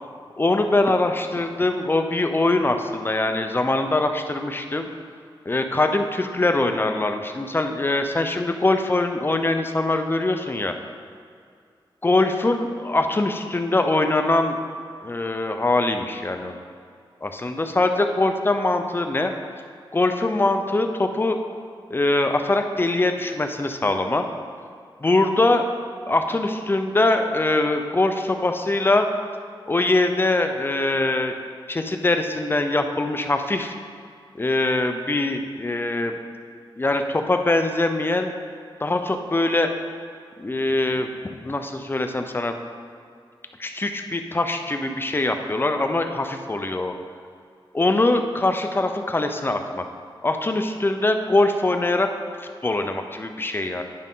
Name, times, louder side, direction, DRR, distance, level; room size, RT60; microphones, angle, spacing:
voice 1, 0.4-4.9 5.5-10.7 12.0-14.6 15.0-16.5 17.2-19.3 19.9-21.4 21.9-24.3 25.0-25.7 26.1-29.1 29.7-31.3 31.7-33.8 34.3-36.2 36.8-38.3 38.8-39.7 40.4-41.1 41.4-42.6 43.6-47.0 47.7-49.8 50.2-52.1 52.4-53.8, left 2 dB, 25° left, 6 dB, 0.6 m, -22 dB
10.5 x 5.2 x 3.7 m, 2.3 s
wide cardioid pair, 100°, 9 cm